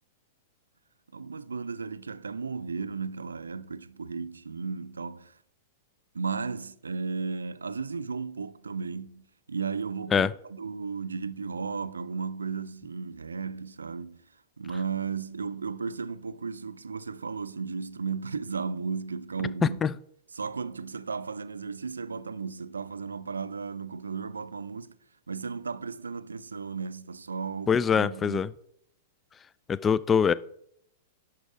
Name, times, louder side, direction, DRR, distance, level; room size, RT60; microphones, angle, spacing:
voice 1, 1.1-5.4 6.1-14.3 14.6-19.8 20.3-25.0 25.3-28.5, right 5 dB, 75° right, 0.4 m, -35 dB
voice 2, 27.7-28.5 29.7-30.3, left 7 dB, 20° left, 0.3 m, -23 dB
11.0 x 4.5 x 4.9 m
figure-of-eight pair, 100°, 0 cm